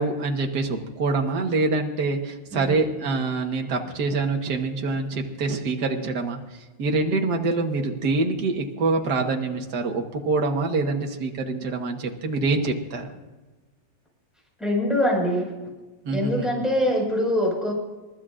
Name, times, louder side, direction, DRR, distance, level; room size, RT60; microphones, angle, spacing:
voice 1, 0.0-6.4 6.8-13.1 16.1-16.6, right 3 dB, 65° right, 3 dB, 1.9 m, -25 dB
voice 2, 14.6-15.5 16.1-17.7, equal, ahead, -2 dB, 5.2 m, -23 dB
28.0 x 13.5 x 2.5 m, 1.2 s
omnidirectional pair, 2.0 m